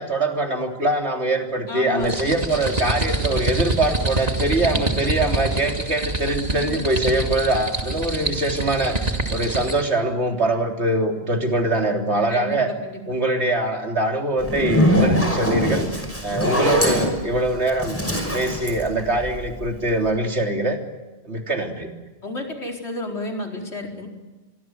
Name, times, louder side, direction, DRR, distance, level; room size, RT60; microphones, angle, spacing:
voice 1, 0.0-12.7 13.1-15.9 16.2-18.0 18.3-20.8 21.3-21.9, right 1 dB, 80° right, 3 dB, 3.7 m, -23 dB
voice 2, 1.7-2.1 4.6-4.9 5.2-5.3 6.5-6.8 12.3-13.0 22.2-24.1, left 2 dB, 80° left, 2 dB, 4.9 m, -32 dB
sound 1, 2.0-9.9, right 2 dB, 35° right, 2.5 m, -26 dB
Zipper (clothing), 14.4-19.7, equal, 10° left, 5.6 m, -22 dB
25.0 x 24.0 x 7.8 m, 1.2 s
omnidirectional pair, 1.1 m